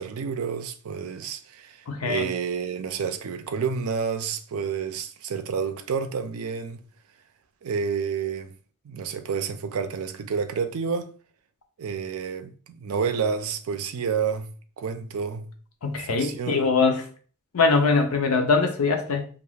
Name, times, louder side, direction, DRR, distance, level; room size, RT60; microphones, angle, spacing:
voice 1, 0.0-6.8 7.6-8.5 8.8-11.1 11.8-15.5 16.0-16.7, right 6 dB, 75° right, 0.4 m, -29 dB
voice 2, 1.9-2.3 15.8-17.1 17.5-19.3, left 4 dB, 90° left, 0.6 m, -22 dB
2.5 x 2.3 x 3.2 m
head